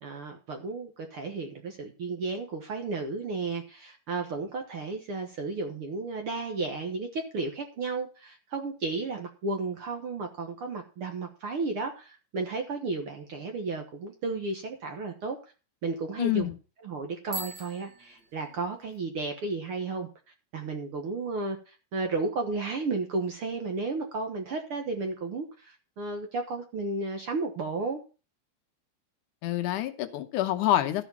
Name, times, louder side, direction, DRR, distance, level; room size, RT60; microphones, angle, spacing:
voice 1, 0.0-15.4 15.8-16.5 16.8-20.1 20.5-28.0, right 3 dB, 55° right, 1.8 m, -33 dB
voice 2, 16.2-16.5 29.4-31.1, left 13 dB, 75° left, 2.3 m, -27 dB
Bicycle bell, 17.2-19.0, right 2 dB, 40° right, 2.0 m, -42 dB
13.0 x 5.0 x 7.1 m
omnidirectional pair, 3.7 m